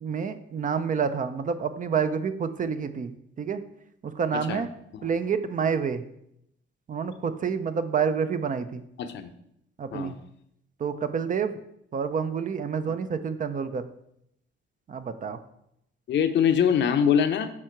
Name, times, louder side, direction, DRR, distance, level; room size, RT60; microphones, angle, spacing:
voice 1, 0.0-3.6 4.0-4.7 5.0-6.0 6.9-8.8 9.8-10.1 10.8-11.5 11.9-13.8 14.9-15.4, right 6 dB, 40° right, 11 dB, 0.5 m, -28 dB
voice 2, 4.3-4.7 4.9-5.1 9.0-9.3 9.9-10.2 16.1-17.5, left 8 dB, 65° left, 9 dB, 0.6 m, -23 dB
7.4 x 3.7 x 4.5 m, 0.76 s
cardioid pair, 90°, 20 cm